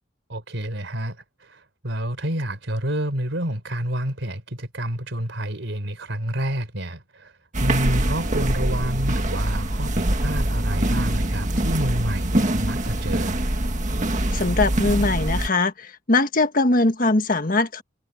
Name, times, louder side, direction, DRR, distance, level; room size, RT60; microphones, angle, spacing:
voice 1, 0.3-13.4, right 1 dB, 70° right, 3.8 m, -29 dB
sound 1, 7.5-15.5, right 1 dB, 40° right, 1.8 m, -24 dB
voice 2, 14.3-17.8, left 2 dB, 45° left, 1.7 m, -21 dB
head